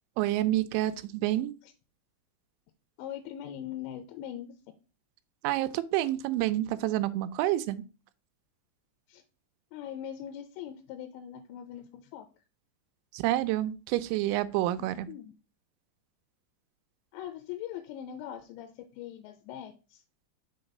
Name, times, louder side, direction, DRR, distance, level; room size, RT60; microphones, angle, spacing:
voice 1, 0.2-1.5 5.4-7.8 13.1-15.1, right 14 dB, 85° right, 2.9 m, -28 dB
voice 2, 3.0-4.5 9.1-9.2 9.7-12.3 14.8-15.3 17.1-20.0, left 10 dB, 80° left, 2.8 m, -41 dB
6.5 x 3.8 x 5.3 m
omnidirectional pair, 5.3 m